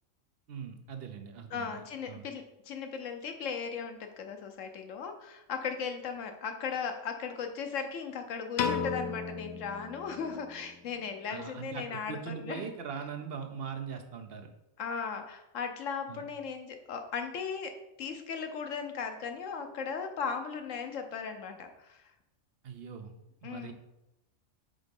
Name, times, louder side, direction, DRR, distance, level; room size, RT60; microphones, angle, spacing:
voice 1, 0.5-2.3 11.3-14.5 16.1-16.2 22.6-23.1 23.4-23.7, right 6 dB, 60° right, 6 dB, 0.8 m, -41 dB
voice 2, 1.5-12.7 14.8-22.0 23.4-23.7, left 6 dB, 85° left, 6 dB, 1.1 m, -37 dB
Piano, 8.6-10.8, left 6 dB, 70° left, 0.8 m, -34 dB
5.1 x 3.9 x 5.3 m, 0.90 s
omnidirectional pair, 1.3 m